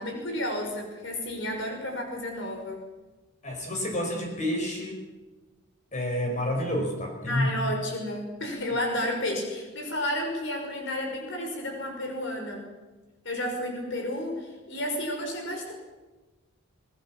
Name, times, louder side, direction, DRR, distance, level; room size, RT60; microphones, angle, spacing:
voice 1, 0.0-2.8 7.3-12.7 13.2-15.7, left 1 dB, 55° left, 3 dB, 5.8 m, -31 dB
voice 2, 3.4-5.0 5.9-7.5, left 1 dB, 35° left, 2 dB, 5.1 m, -29 dB
27.5 x 20.0 x 7.4 m, 1.2 s
head